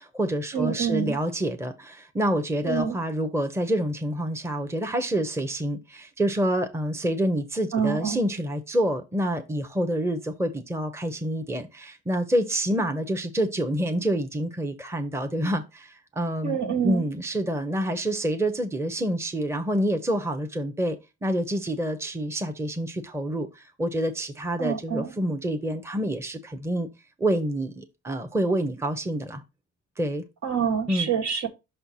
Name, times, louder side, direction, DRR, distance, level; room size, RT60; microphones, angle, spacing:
voice 1, 0.0-16.6 16.8-26.9 27.2-29.4 30.0-30.2 30.9-31.1, right 1 dB, 10° right, 0.8 m, -27 dB
voice 2, 0.5-1.2 2.6-3.0 7.7-8.2 16.4-17.0 24.6-25.1 30.4-31.5, right 7 dB, 65° right, 1.8 m, -26 dB
5.9 x 4.4 x 4.1 m
cardioid pair, 90°, 30 cm